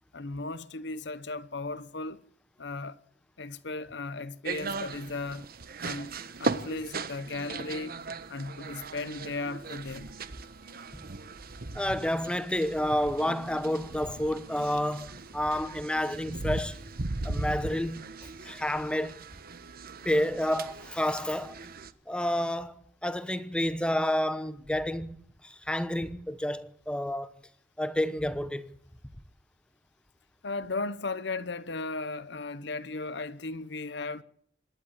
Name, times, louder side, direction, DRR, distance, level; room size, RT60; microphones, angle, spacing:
voice 1, 0.1-2.2 2.6-3.0 3.4-5.5 5.8-6.1 6.4-8.0 8.3-10.1 30.4-34.2, left 3 dB, 65° left, 1.0 m, -36 dB
sound 1, 4.4-21.9, right 3 dB, 55° right, 1.1 m, -38 dB
voice 2, 11.7-16.8 17.2-18.1 18.4-19.2 20.0-21.6 22.1-22.7 23.0-25.2 25.4-27.3 27.8-28.7, left 1 dB, 5° left, 0.9 m, -29 dB
26.5 x 11.5 x 8.8 m
head